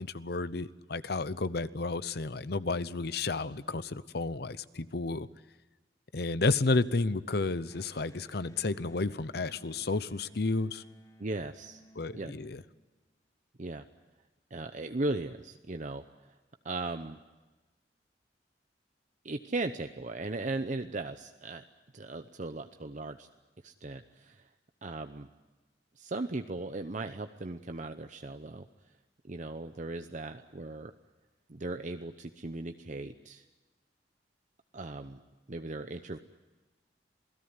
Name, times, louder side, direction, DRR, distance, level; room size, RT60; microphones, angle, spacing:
voice 1, 0.0-5.3 6.1-10.8 12.0-12.6, left 3 dB, 60° left, 15 dB, 0.8 m, -31 dB
Electric guitar, 7.7-13.2, equal, 20° left, 1.2 m, -59 dB
voice 2, 11.2-11.8 12.1-12.3 13.6-13.8 14.5-16.0 16.6-17.2 19.2-21.6 21.9-23.3 23.6-24.5 24.8-25.3 26.0-28.7 29.3-30.9 31.5-33.4 34.7-35.2 35.5-36.2, right 2 dB, 45° right, 7 dB, 0.8 m, -37 dB
27.5 x 17.5 x 9.7 m, 1.2 s
head